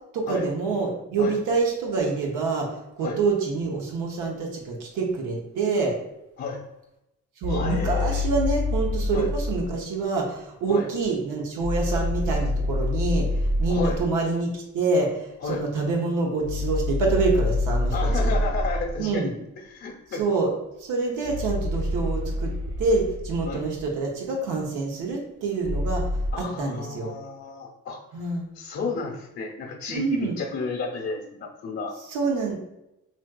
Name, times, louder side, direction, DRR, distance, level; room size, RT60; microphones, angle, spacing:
voice 1, 0.1-2.7 3.0-5.9 7.4-13.3 13.6-18.3 19.0-19.3 20.1-20.5 20.8-22.5 22.8-26.0 26.4-27.1 28.1-28.5 29.9-30.4 32.1-32.5, right 3 dB, 90° right, 0 dB, 0.8 m, -26 dB
sound 1, 7.4-9.7 11.6-14.1 16.4-19.0 21.2-23.8 25.6-26.3, left 2 dB, 50° right, 0.9 m, -26 dB
voice 2, 7.5-8.2 9.1-9.3 10.7-10.9 13.7-14.0 15.4-15.6 17.9-19.3 19.6-20.2 23.5-23.6 26.3-28.0 28.5-31.9, left 4 dB, 60° left, -2 dB, 0.8 m, -32 dB
4.2 x 2.3 x 2.2 m, 0.88 s
cardioid pair, 90°, 30 cm